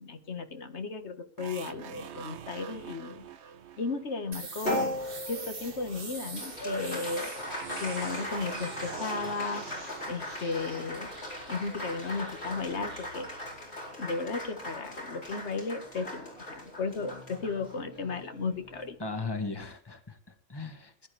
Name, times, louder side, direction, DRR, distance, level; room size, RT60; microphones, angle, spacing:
voice 1, 0.0-3.3 3.8-4.9 5.3-7.3 7.8-11.1 11.5-13.4 14.0-19.0, left 4 dB, 90° left, 7 dB, 1.8 m, -35 dB
sound 1, 1.4-5.3 7.5-11.8, right 9 dB, 85° right, 1.1 m, -46 dB
sound 2, 4.3-15.9, right 3 dB, 55° right, 1.9 m, -47 dB
Applause, 4.6-19.3, left 1 dB, 70° left, 4.6 m, -38 dB
voice 2, 19.0-21.1, left 3 dB, 20° left, 7 dB, 1.8 m, -37 dB
20.5 x 11.0 x 3.3 m, 0.38 s
omnidirectional pair, 1.1 m